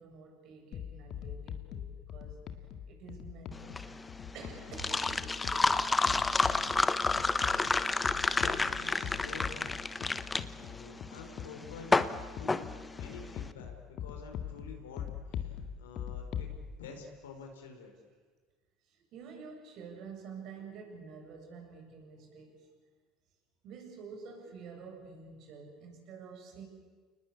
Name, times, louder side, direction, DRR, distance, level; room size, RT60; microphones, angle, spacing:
voice 1, 0.0-2.4 2.9-4.0 4.3-5.8 6.8-7.2 10.9-11.0 18.8-22.7 23.6-26.6, right 5 dB, 55° right, 2 dB, 7.7 m, -49 dB
sound 1, 0.7-16.6, left 9 dB, 50° left, 2.1 m, -43 dB
sound 2, 3.5-13.4, left 3 dB, 20° left, 1.1 m, -30 dB
voice 2, 8.4-9.7 10.5-16.5 16.8-17.9, left 4 dB, 80° left, 3 dB, 4.5 m, -48 dB
29.5 x 20.0 x 8.7 m, 1.4 s
hypercardioid pair, 70°, 0 cm